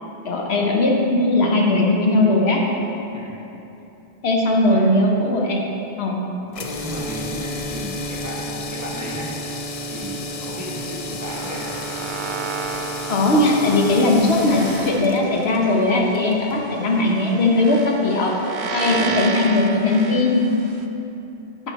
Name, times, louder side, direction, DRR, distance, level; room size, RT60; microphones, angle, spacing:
voice 1, 0.2-2.6 4.2-5.6 6.0-6.2 13.1-18.3 18.7-20.5, left 2 dB, 75° left, 0 dB, 1.1 m, -18 dB
sound 1, 6.5-16.6, left 1 dB, 50° left, 0.4 m, -32 dB
voice 2, 6.8-9.3 9.9-11.8 16.5-16.6 18.9-19.1, left 1 dB, 15° right, -6 dB, 1.0 m, -34 dB
sound 2, 11.3-20.8, right 4 dB, 90° right, 0.8 m, -32 dB
8.9 x 4.3 x 4.1 m, 2.9 s
omnidirectional pair, 1.1 m